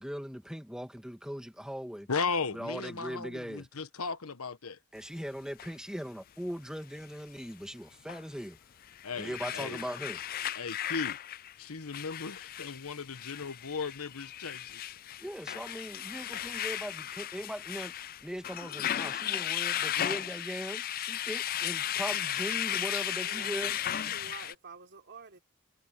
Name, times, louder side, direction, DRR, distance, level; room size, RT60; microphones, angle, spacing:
voice 1, 0.0-2.1 2.5-3.7 4.9-8.6 9.2-10.2 15.2-17.9 18.2-23.8, equal, 5° right, 2.3 m, -39 dB
voice 2, 2.1-4.8 9.0-9.8 10.5-11.2 11.6-14.8, left 4 dB, 75° left, 1.2 m, -36 dB
sound 1, 5.6-5.7 8.1-8.2 8.8-24.5, left 11 dB, 40° left, 0.4 m, -35 dB
voice 3, 23.2-25.4, right 4 dB, 50° right, 3.7 m, -48 dB
head